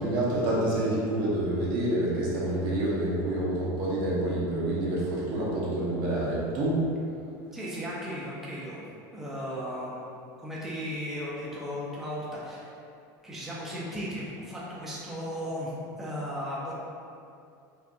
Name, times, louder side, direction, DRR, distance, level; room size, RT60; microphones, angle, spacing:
voice 1, 0.0-6.8, right 1 dB, 50° right, -7 dB, 1.0 m, -28 dB
voice 2, 7.5-8.8 9.1-10.0 10.4-12.7 13.2-16.7, equal, 5° right, -7 dB, 0.5 m, -36 dB
4.6 x 2.5 x 2.6 m, 2.5 s
cardioid pair, 160°, 10 cm